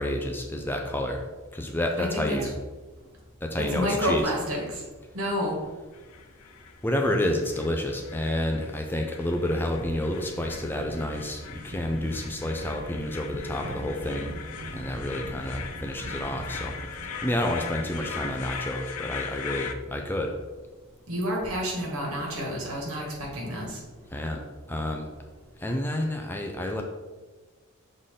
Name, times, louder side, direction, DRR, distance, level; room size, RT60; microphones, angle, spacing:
voice 1, 0.0-2.5 3.4-4.2 6.8-14.3 14.7-16.7 17.2-20.3 24.1-25.1 25.6-26.8, left 1 dB, 10° left, 2 dB, 0.4 m, -29 dB
voice 2, 2.0-2.5 3.6-4.8 5.1-5.6 21.1-23.8, equal, 70° right, -2 dB, 1.8 m, -29 dB
sound 1, 5.9-19.7, left 6 dB, 80° left, 0.5 m, -40 dB
sound 2, 9.1-18.5, right 1 dB, 45° right, 0.6 m, -42 dB
6.5 x 4.1 x 3.7 m, 1.3 s
head